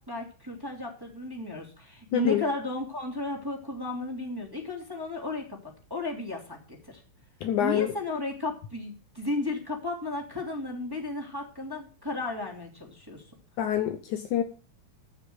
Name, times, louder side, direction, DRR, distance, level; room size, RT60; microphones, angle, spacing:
voice 1, 0.0-7.0 7.6-13.2, left 2 dB, 5° right, 2.5 m, -34 dB
voice 2, 2.1-2.4 7.4-7.9 13.6-14.4, left 11 dB, 70° left, 2.2 m, -26 dB
14.5 x 5.8 x 8.0 m
omnidirectional pair, 4.0 m